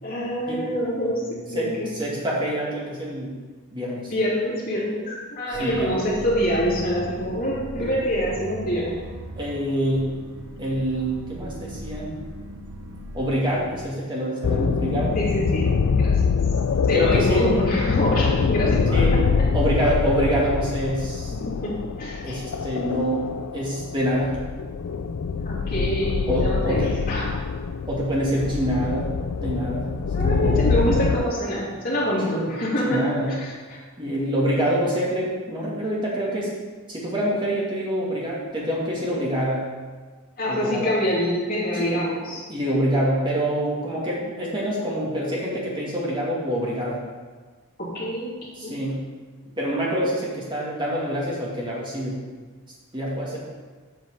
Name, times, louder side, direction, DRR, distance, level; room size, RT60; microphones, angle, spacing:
voice 1, 0.0-2.0 4.1-9.0 15.2-16.4 16.9-19.4 21.3-22.4 25.4-27.4 30.1-33.1 33.4-33.8 40.4-42.4 47.8-48.3 48.6-48.8, equal, 40° left, -6 dB, 2.8 m, -26 dB
voice 2, 1.5-3.3 3.7-4.1 5.6-5.9 7.8-7.9 9.4-10.1 10.6-12.2 13.1-15.2 16.9-17.4 18.9-19.2 19.5-21.3 22.2-24.4 26.3-26.9 27.9-29.9 30.2-30.8 32.2-32.5 32.8-33.3 34.0-36.5 36.9-39.7 40.5-40.9 41.7-42.0 42.5-47.0 48.6-49.0 49.6-52.2 52.9-53.4, equal, 20° right, -5 dB, 2.2 m, -26 dB
sound 1, 5.5-13.9, right 1 dB, 80° right, 1.0 m, -39 dB
sound 2, 14.4-31.2, left 5 dB, 75° left, 0.4 m, -24 dB
8.0 x 6.2 x 5.7 m, 1.4 s
head